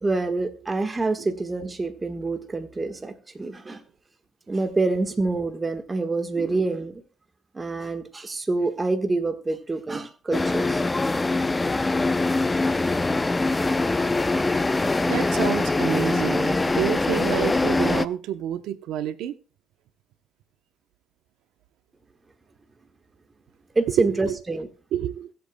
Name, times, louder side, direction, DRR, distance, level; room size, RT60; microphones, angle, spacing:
voice 1, 0.0-3.8 4.5-6.9 7.5-10.8 23.7-24.7, right 3 dB, 25° right, 1.5 m, -26 dB
sound 1, 10.3-18.1, left 2 dB, 20° left, 0.5 m, -23 dB
voice 2, 15.1-19.3 24.0-24.4 24.9-25.3, right 11 dB, 90° right, 0.8 m, -28 dB
22.5 x 7.9 x 2.3 m
cardioid pair, 90°, 0 cm